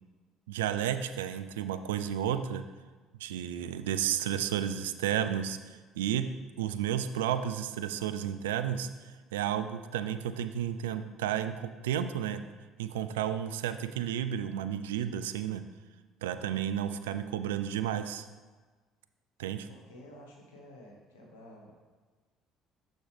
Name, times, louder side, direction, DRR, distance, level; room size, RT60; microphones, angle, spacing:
voice 1, 0.5-2.6 3.2-6.3 6.6-11.5 11.8-12.4 12.8-15.6 16.2-18.3 19.4-19.7, right 10 dB, 80° right, 10 dB, 0.3 m, -32 dB
voice 2, 19.7-21.7, left 1 dB, 80° left, -1 dB, 1.4 m, -51 dB
6.4 x 6.2 x 3.3 m, 1.4 s
hypercardioid pair, 60°, 0 cm